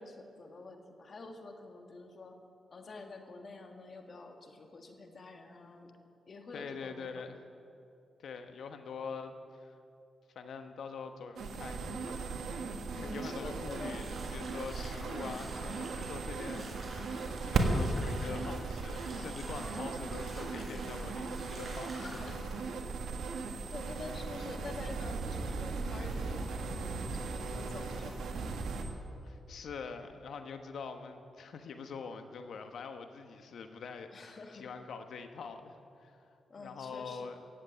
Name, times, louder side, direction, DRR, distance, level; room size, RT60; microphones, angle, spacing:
voice 1, 0.0-2.4 2.7-5.9 6.3-7.4 12.9-14.0 19.5-20.0 22.0-22.4 23.7-28.5 34.1-34.7 36.5-37.4, left 3 dB, 50° left, 4 dB, 1.8 m, -48 dB
voice 2, 6.5-7.4 8.2-9.7 10.3-12.7 13.0-17.1 17.4-22.3 23.6-23.7 29.2-36.3 36.6-37.4, left 5 dB, 75° left, 7 dB, 1.1 m, -44 dB
sound 1, 11.4-28.8, right 3 dB, 75° right, 1.5 m, -37 dB
Bathtub (filling or washing), 13.6-22.4, right 1 dB, 35° right, 4.7 m, -49 dB
16.0 x 8.1 x 8.9 m, 2.6 s
cardioid pair, 85°, 0 cm